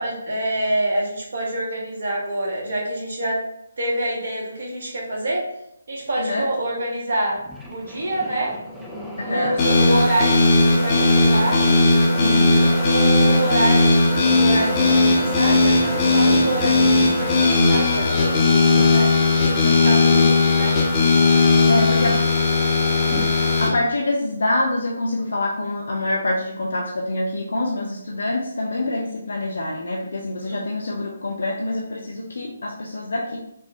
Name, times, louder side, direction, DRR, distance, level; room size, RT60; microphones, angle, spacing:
voice 1, 0.0-3.4 3.8-5.4 5.9-7.4 7.7-8.5 9.2-11.6 12.8-14.0 14.3-19.1 19.6-20.2 20.6-21.1 30.4-30.6, right 1 dB, 50° right, -3 dB, 1.1 m, -26 dB
voice 2, 6.2-6.5 9.2-9.6 12.2-12.6 19.8-20.1 21.7-22.2 23.6-33.4, left 2 dB, 60° left, -1 dB, 0.5 m, -25 dB
sound 1, 7.3-23.7, equal, 5° right, 0.5 m, -35 dB
sound 2, 9.6-23.7, left 3 dB, 25° left, 0.7 m, -17 dB
5.4 x 2.1 x 2.6 m, 0.79 s
figure-of-eight pair, 140°, 0 cm